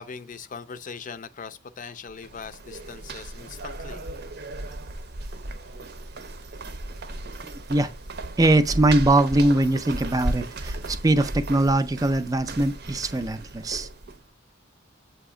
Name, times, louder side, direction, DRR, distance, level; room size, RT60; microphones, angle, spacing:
voice 1, 0.0-4.0, left 5 dB, 40° left, 0.5 m, -40 dB
sound 1, 2.1-14.2, right 1 dB, 55° right, 0.7 m, -35 dB
voice 2, 7.4-7.9 8.4-13.9, right 2 dB, 20° right, 0.4 m, -22 dB
7.7 x 2.9 x 4.8 m
head